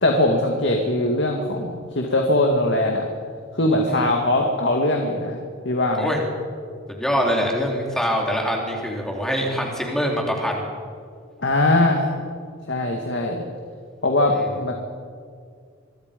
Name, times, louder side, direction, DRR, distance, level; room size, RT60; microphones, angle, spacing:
voice 1, 0.0-3.1 3.5-6.1 11.4-12.1 12.7-13.4 14.0-14.7, left 1 dB, 60° left, 2 dB, 2.2 m, -21 dB
voice 2, 6.9-10.7 14.3-14.5, equal, 5° left, -1 dB, 3.8 m, -24 dB
25.0 x 24.0 x 5.4 m, 2.1 s
head